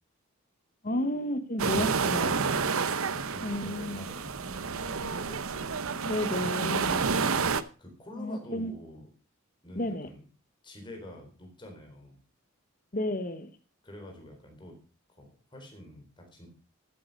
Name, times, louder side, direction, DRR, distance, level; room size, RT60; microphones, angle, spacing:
voice 1, 0.8-2.4 3.4-4.0 6.1-7.1 8.2-8.7 9.7-10.1 12.9-13.5, left 1 dB, 40° left, 10 dB, 1.0 m, -32 dB
sound 1, 1.6-7.6, right 5 dB, 75° right, 0.8 m, -29 dB
voice 2, 2.9-5.6 7.8-9.1 9.6-10.2 10.6-12.2 13.8-14.8 15.1-16.5, left 1 dB, 20° left, 2 dB, 4.0 m, -47 dB
14.5 x 8.3 x 5.3 m, 0.36 s
head